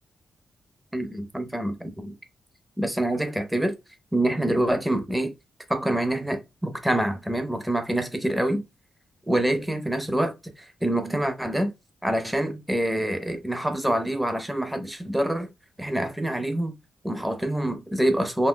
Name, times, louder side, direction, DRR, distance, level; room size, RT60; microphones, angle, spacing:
voice 1, 0.9-2.1 2.8-3.7 4.1-5.3 5.7-8.6 9.3-11.7 12.0-15.5 15.8-16.7 17.0-18.5, right 1 dB, 5° right, 0.5 m, -26 dB
2.7 x 2.2 x 3.7 m
wide cardioid pair, 175°, 0 cm